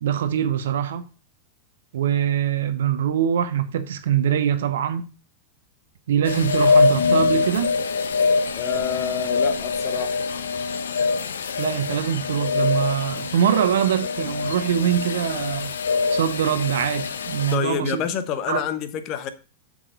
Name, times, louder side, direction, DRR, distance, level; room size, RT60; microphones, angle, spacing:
voice 1, 0.0-1.1 1.9-5.0 6.1-7.7 11.6-15.7 16.1-18.0 18.5-18.6, right 9 dB, 60° right, 0.8 m, -23 dB
sound 1, 6.2-17.6, left 4 dB, 65° left, 0.7 m, -24 dB
voice 2, 8.6-10.2 17.5-19.3, left 8 dB, 40° left, 1.1 m, -28 dB
7.4 x 6.4 x 3.9 m
figure-of-eight pair, 90°, 0 cm